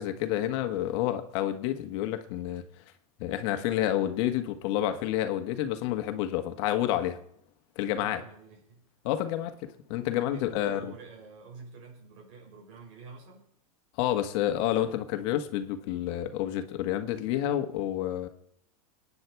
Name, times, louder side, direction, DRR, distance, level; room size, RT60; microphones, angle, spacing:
voice 1, 0.0-2.6 3.2-7.2 7.7-8.2 9.0-10.8 14.0-18.3, left 12 dB, 50° left, 1.6 m, -29 dB
voice 2, 7.9-8.9 10.3-13.4, right 4 dB, 60° right, 6.1 m, -48 dB
22.5 x 9.7 x 4.7 m
supercardioid pair, 140°, 18 cm